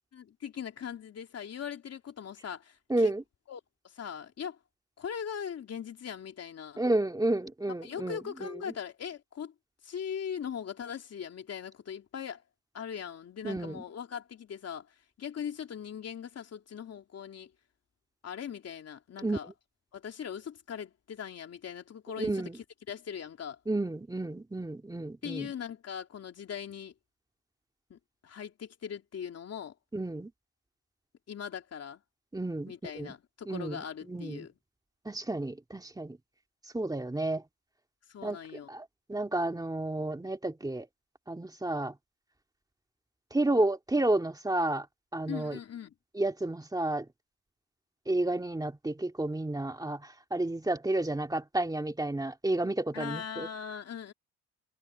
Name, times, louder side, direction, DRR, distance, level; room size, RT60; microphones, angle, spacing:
voice 1, 0.1-3.1 3.5-4.6 5.0-6.8 7.8-9.5 9.8-12.4 12.7-17.5 18.2-19.5 19.9-23.6 25.2-26.9 27.9-29.7 31.3-32.0 32.7-34.6 38.1-38.7 45.3-45.9 52.9-54.1, left 8 dB, 55° left, 3.3 m, -40 dB
voice 2, 2.9-3.2 6.8-8.2 13.4-13.8 19.2-19.4 22.2-22.6 23.7-25.5 29.9-30.3 32.3-33.1 33.5-33.8 34.1-34.5 35.1-36.2 36.7-37.4 38.2-38.4 38.7-40.9 41.3-41.9 43.3-44.9 45.1-45.6 46.2-47.1 48.1-53.5, right 2 dB, 10° right, 2.3 m, -31 dB
cardioid pair, 90°, 30 cm